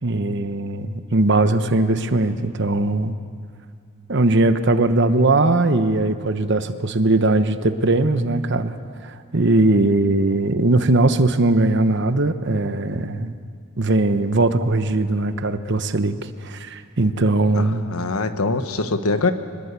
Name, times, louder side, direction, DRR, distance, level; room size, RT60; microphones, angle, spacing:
voice 1, 0.0-3.1 4.1-8.8 9.0-13.3 13.8-17.9, right 2 dB, 55° right, 10 dB, 1.0 m, -20 dB
voice 2, 17.6-19.3, left 3 dB, 90° left, 9 dB, 1.4 m, -23 dB
24.5 x 20.5 x 8.3 m, 2.2 s
head